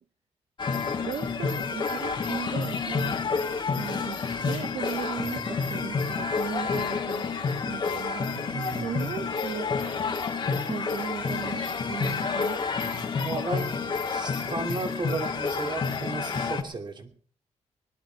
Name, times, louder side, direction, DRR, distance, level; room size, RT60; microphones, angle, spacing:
sound 1, 0.6-16.6, left 5 dB, 40° left, 2.0 m, -29 dB
voice 1, 1.0-7.3 7.6-9.7 10.1-12.6, right 7 dB, 60° right, 9 dB, 0.9 m, -37 dB
voice 2, 8.3-9.0 13.1-13.7 14.1-17.1, right 3 dB, 40° right, 5 dB, 2.6 m, -34 dB
19.5 x 12.0 x 4.6 m, 0.43 s
cardioid pair, 110°, 12 cm